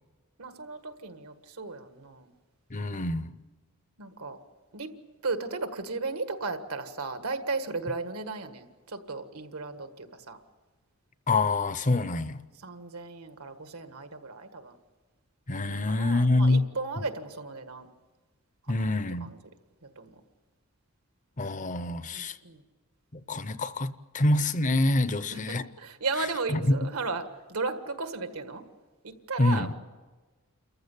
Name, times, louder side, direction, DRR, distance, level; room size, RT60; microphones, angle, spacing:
voice 1, 0.4-2.3 4.0-4.4 4.7-4.9 5.2-10.4 12.6-14.8 15.7-17.9 18.7-19.4 19.8-20.1 22.1-22.6 25.3-28.6 29.0-29.7, right 3 dB, 85° right, 1.7 m, -35 dB
voice 2, 2.7-3.3 11.3-12.4 15.5-16.6 18.7-19.3 21.4-22.4 23.3-25.6 26.5-26.7 29.4-29.7, left 2 dB, 35° left, 0.7 m, -26 dB
29.0 x 15.0 x 8.4 m
head